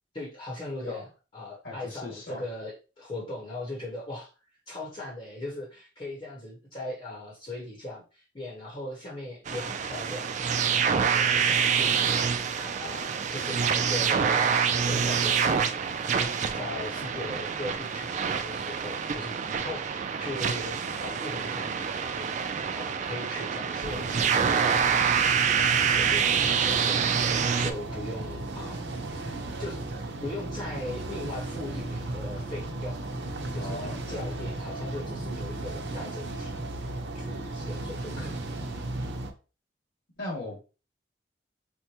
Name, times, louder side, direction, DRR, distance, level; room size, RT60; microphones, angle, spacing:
voice 1, 0.1-15.8 16.1-22.3 22.7-27.0 27.4-29.8 30.2-33.0 33.5-36.6 37.1-38.5, left 1 dB, 35° left, -4 dB, 1.0 m, -39 dB
voice 2, 1.6-2.4 17.1-17.4 33.6-34.3 40.2-40.6, left 2 dB, 75° left, -3 dB, 1.9 m, -38 dB
sound 1, 9.5-27.7, right 6 dB, 45° right, 0.3 m, -26 dB
sound 2, 23.8-39.3, right 2 dB, 85° right, 0.6 m, -35 dB
4.5 x 2.1 x 2.8 m, 0.33 s
head